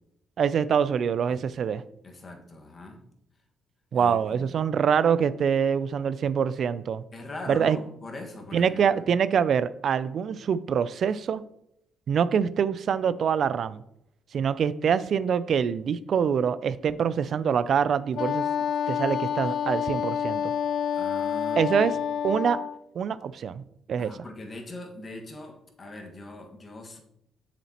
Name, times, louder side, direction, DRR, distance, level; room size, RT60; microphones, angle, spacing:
voice 1, 0.4-1.8 3.9-7.0 7.5-7.8 8.5-11.4 12.1-13.8 14.3-18.5 18.9-20.5 21.6-22.0 22.2-22.6 23.0-23.6 23.9-24.1, right 7 dB, 60° right, 16 dB, 0.3 m, -25 dB
voice 2, 1.3-3.0 3.9-4.6 7.1-9.0 20.9-21.9 24.0-27.0, left 2 dB, 35° left, 2 dB, 1.6 m, -41 dB
Wind instrument woodwind instrument, 18.1-22.8, left 8 dB, 60° left, 0.4 m, -28 dB
7.1 x 7.1 x 2.9 m, 0.78 s
cardioid pair, 90°, 0 cm